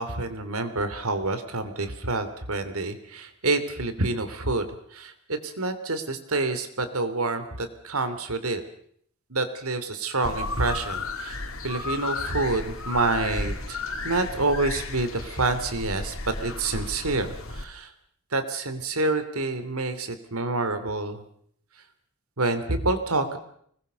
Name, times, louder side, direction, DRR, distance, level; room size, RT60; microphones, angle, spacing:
voice 1, 0.0-8.6 9.3-17.9 18.3-21.2 22.4-23.4, right 2 dB, 75° right, 9 dB, 3.0 m, -28 dB
sound 1, 10.2-17.6, left 3 dB, 65° left, 2.9 m, -33 dB
25.5 x 20.5 x 6.9 m, 0.65 s
head